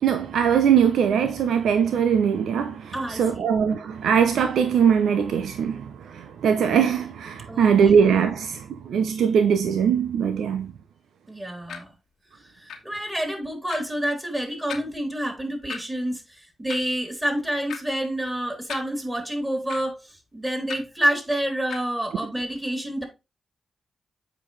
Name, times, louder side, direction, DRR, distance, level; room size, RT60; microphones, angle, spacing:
voice 1, 0.0-10.7, right 7 dB, 80° right, 0.7 m, -21 dB
voice 2, 2.9-3.5 7.5-7.7 11.3-11.9 12.4-23.0, right 1 dB, 15° right, 3.5 m, -28 dB
sound 1, 11.7-11.8 12.7-12.8 13.7-13.8 14.7-14.9 15.7-15.8 16.7-16.9 17.7-17.8 18.7-18.8 19.7-19.8 20.7-20.8 21.7-21.8, left 7 dB, 80° left, 1.3 m, -35 dB
7.7 x 5.0 x 3.2 m
supercardioid pair, 50°, 0 cm